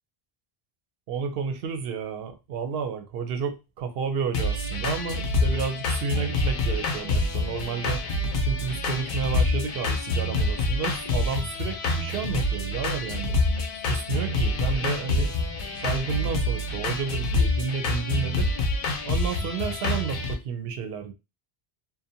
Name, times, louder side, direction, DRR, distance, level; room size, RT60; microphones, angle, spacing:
voice 1, 1.1-8.0 8.4-13.4 13.9-15.3 15.8-18.5 19.0-21.1, right 6 dB, 70° right, 7 dB, 0.8 m, -31 dB
sound 1, 4.3-20.3, left 2 dB, 65° left, 0.7 m, -26 dB
2.5 x 2.1 x 2.7 m, 0.26 s
omnidirectional pair, 1.0 m